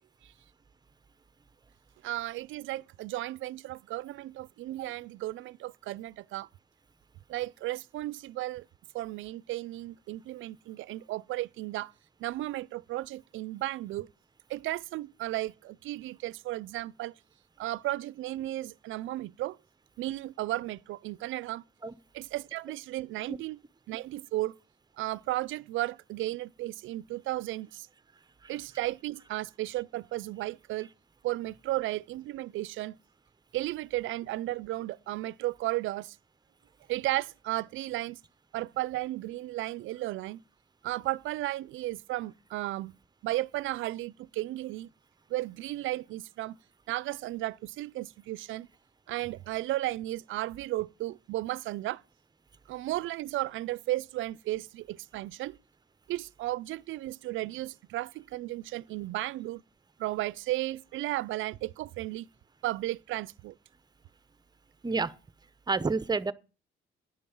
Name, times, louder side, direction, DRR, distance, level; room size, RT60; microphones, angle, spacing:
voice 1, 2.0-6.5 7.3-8.7 8.9-11.9 12.2-14.1 14.5-17.1 17.6-19.6 20.0-21.6 22.1-23.6 23.9-24.6 25.0-27.9 28.5-30.9 31.2-33.0 33.5-36.2 36.9-38.2 38.5-40.4 40.8-42.9 43.2-44.9 45.3-46.6 46.9-48.7 49.1-52.0 52.7-55.6 56.1-59.6 60.0-62.3 62.6-63.5, right 16 dB, 80° right, 0.4 m, -34 dB
voice 2, 64.8-65.2 65.7-66.3, right 4 dB, 20° right, 0.7 m, -29 dB
10.5 x 5.4 x 8.5 m
cardioid pair, 90°, 20 cm